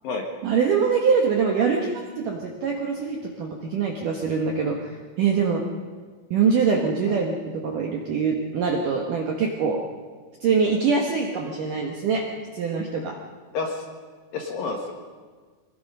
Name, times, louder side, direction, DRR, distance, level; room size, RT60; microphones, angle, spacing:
voice 1, 0.4-5.6 6.3-9.8 10.4-12.2 12.5-13.2, right 5 dB, 65° right, 1 dB, 2.1 m, -24 dB
voice 2, 13.5-13.8 14.3-14.9, left 4 dB, 60° left, 2 dB, 2.6 m, -29 dB
25.0 x 20.0 x 5.5 m, 1.5 s
omnidirectional pair, 5.7 m